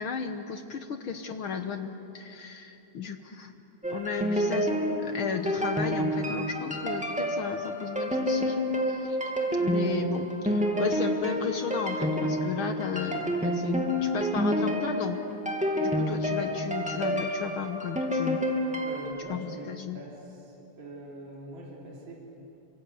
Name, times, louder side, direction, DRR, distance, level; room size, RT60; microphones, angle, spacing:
voice 1, 0.0-3.5 3.9-4.7 5.0-8.6 8.9-9.2 9.5-15.2 15.8-18.4 19.3-20.0, left 6 dB, 60° left, 7 dB, 1.5 m, -34 dB
sound 1, 3.8-19.1, equal, 5° right, 2.0 m, -28 dB
voice 2, 18.9-19.7 19.9-20.1 20.8-22.2, right 1 dB, 70° right, -3 dB, 4.9 m, -42 dB
28.5 x 25.5 x 8.3 m, 2.9 s
omnidirectional pair, 3.4 m